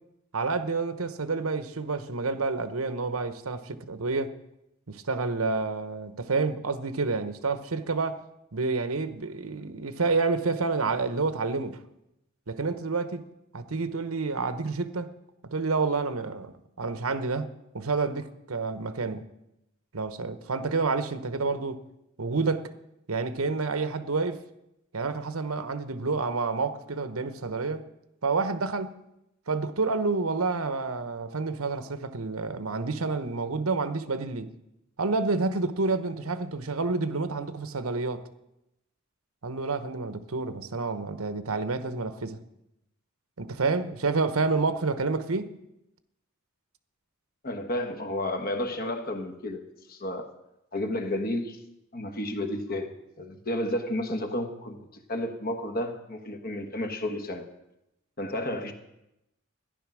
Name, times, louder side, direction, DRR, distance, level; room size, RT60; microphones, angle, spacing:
voice 1, 0.3-4.3 4.9-8.2 8.5-11.8 12.5-13.2 13.5-15.1 15.5-17.5 17.7-19.2 19.9-21.8 22.2-22.7 23.1-24.4 24.9-27.9 28.2-29.0 29.5-34.5 35.0-38.2 39.4-42.4 43.4-45.5, right 3 dB, 85° right, 1.0 m, -29 dB
voice 2, 47.4-50.3 50.7-51.6 51.9-57.5 58.2-58.7, left 1 dB, 45° left, 1.4 m, -32 dB
14.0 x 11.0 x 6.2 m
head